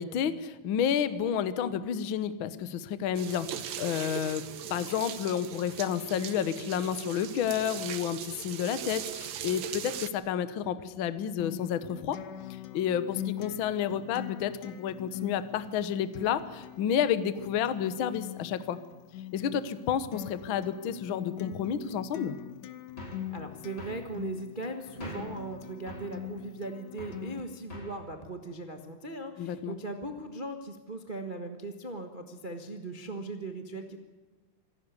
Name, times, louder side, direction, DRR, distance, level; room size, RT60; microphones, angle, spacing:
voice 1, 0.0-4.4 4.7-12.2 12.7-18.8 19.3-22.4 29.4-29.8, left 8 dB, 65° left, 13 dB, 1.2 m, -30 dB
sound 1, 3.1-10.1, right 9 dB, 75° right, 1.1 m, -39 dB
Acoustic guitar, 11.4-27.4, left 12 dB, 85° left, 2.6 m, -42 dB
sound 2, 23.0-23.3 23.8-24.1 25.0-25.4 25.9-26.1 27.0-27.3 27.7-28.0, left 1 dB, 30° left, 5.7 m, -43 dB
voice 2, 23.3-34.0, right 2 dB, 55° right, 5 dB, 0.5 m, -39 dB
26.0 x 12.5 x 9.7 m, 1.3 s
omnidirectional pair, 3.7 m